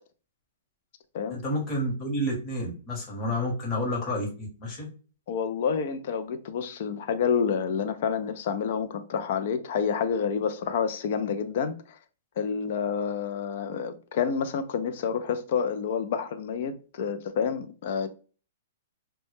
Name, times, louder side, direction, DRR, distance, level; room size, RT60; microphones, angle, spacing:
voice 1, 1.3-4.9, left 1 dB, 25° left, 0.9 m, -30 dB
voice 2, 5.3-12.0 12.4-18.1, left 6 dB, 55° left, 0.3 m, -28 dB
2.1 x 2.1 x 3.0 m
hypercardioid pair, 150°, 0 cm